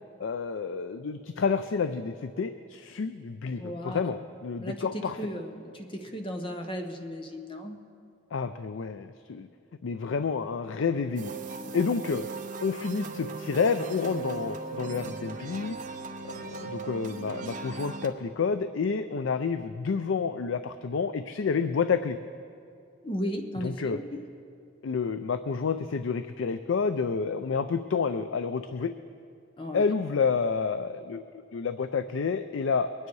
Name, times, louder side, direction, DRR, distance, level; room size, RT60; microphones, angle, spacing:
voice 1, 0.2-5.2 8.3-9.5 9.8-12.3 12.6-15.8 16.2-22.2 23.6-24.0 24.8-28.9 29.7-31.2 31.5-33.1, left 5 dB, 80° left, 11 dB, 0.4 m, -29 dB
voice 2, 3.6-4.0 4.6-7.8 23.0-24.2 29.6-29.9, equal, 25° left, 5 dB, 0.9 m, -35 dB
sound 1, 11.2-18.1, right 4 dB, 40° right, 0.9 m, -38 dB
22.5 x 9.7 x 4.7 m, 2.4 s
head